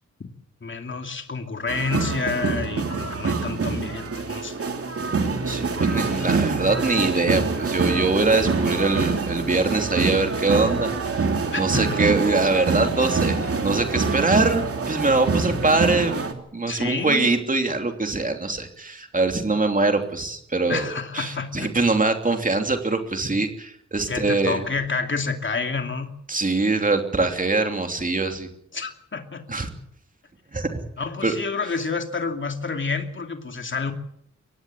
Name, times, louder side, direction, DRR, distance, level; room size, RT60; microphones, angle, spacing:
voice 1, 0.6-4.6 11.5-12.0 16.7-17.3 20.7-21.7 24.1-26.1 28.7-29.5 31.0-33.9, left 4 dB, 40° left, 5 dB, 2.7 m, -29 dB
sound 1, 1.7-16.3, right 4 dB, 50° right, 2.8 m, -25 dB
voice 2, 5.5-10.9 11.6-24.6 26.3-28.5 29.5-29.7 30.5-30.8 31.2-31.3, right 3 dB, 30° right, 5 dB, 3.0 m, -23 dB
23.0 x 18.5 x 8.6 m, 0.71 s
wide cardioid pair, 170°, 29 cm